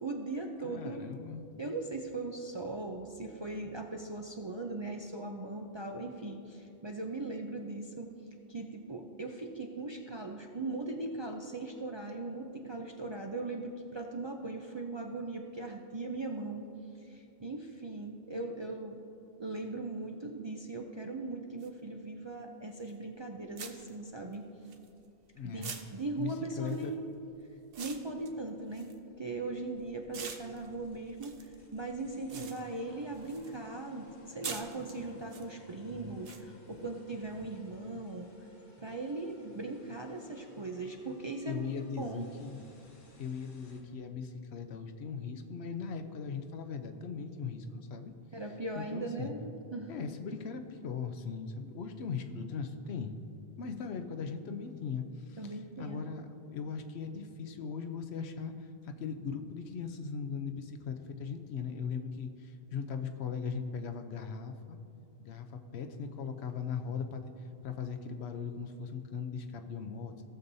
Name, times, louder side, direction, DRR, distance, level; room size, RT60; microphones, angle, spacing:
voice 1, 0.0-1.0 1.6-8.1 8.5-16.7 17.0-19.0 19.4-24.5 25.4-27.1 27.8-38.3 38.8-42.3 48.3-49.9 55.4-56.0, right 2 dB, 40° right, 1 dB, 0.4 m, -39 dB
voice 2, 0.6-1.4 25.3-25.7 26.2-26.9 32.3-32.5 41.5-42.6 43.2-48.1 48.7-49.3 49.9-53.2 53.6-64.8 65.2-70.2, left 6 dB, 80° left, 6 dB, 1.0 m, -39 dB
sound 1, 21.6-21.7 22.9-23.0 23.6-25.2 25.6-29.7 30.1-33.6 33.9-35.4 36.2-36.4, right 6 dB, 65° right, 0.9 m, -46 dB
sound 2, 29.5-43.8, left 1 dB, 50° left, 1.4 m, -59 dB
17.0 x 7.1 x 2.7 m, 2.8 s
omnidirectional pair, 1.1 m